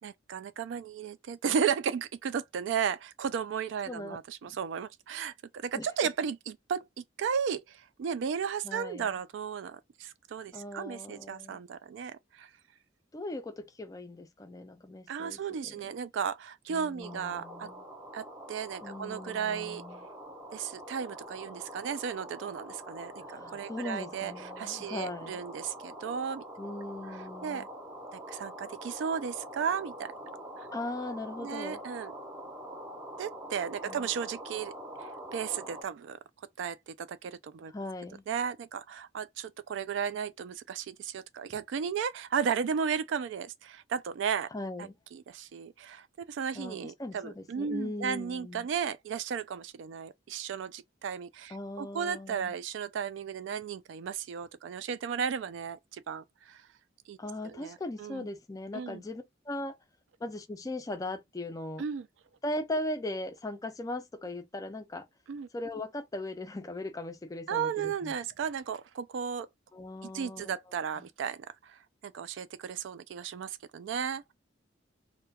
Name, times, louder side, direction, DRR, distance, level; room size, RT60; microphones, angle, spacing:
voice 1, 0.0-12.5 15.1-17.7 18.1-19.8 20.5-26.4 27.4-27.7 28.1-30.1 30.6-30.7 31.4-32.1 33.2-34.7 35.0-36.2 36.6-37.7 38.3-44.5 44.8-56.6 57.1-57.2 57.4-58.3 58.7-59.0 61.8-62.1 65.3-65.5 67.5-69.5 70.0-74.3, right 7 dB, 70° right, 0.3 m, -35 dB
voice 2, 3.9-4.2 4.4-4.5 5.7-5.9 8.6-9.1 10.5-11.6 13.1-15.8 16.7-17.8 18.8-20.0 23.2-25.4 26.6-27.7 30.7-31.8 33.8-34.1 37.7-38.2 44.5-45.0 46.5-48.7 51.5-52.6 57.2-59.8 60.2-61.8 62.4-65.1 65.5-68.1 69.7-70.6 71.0-71.1, left 1 dB, 20° left, 0.4 m, -39 dB
sound 1, 17.0-35.8, right 1 dB, 15° right, 0.6 m, -45 dB
2.3 x 2.1 x 2.7 m
head